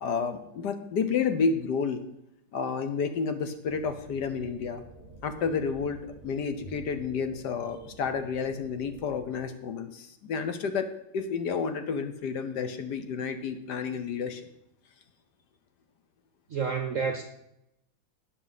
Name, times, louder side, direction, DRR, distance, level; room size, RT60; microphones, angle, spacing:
voice 1, 0.0-2.0 2.5-4.8 5.2-14.4, left 5 dB, 65° left, 9 dB, 1.3 m, -30 dB
sound 1, 3.7-9.4, right 1 dB, 30° left, 3.7 m, -49 dB
voice 2, 16.5-17.2, right 5 dB, 55° right, 6 dB, 0.9 m, -29 dB
18.0 x 6.2 x 4.1 m, 0.80 s
omnidirectional pair, 2.1 m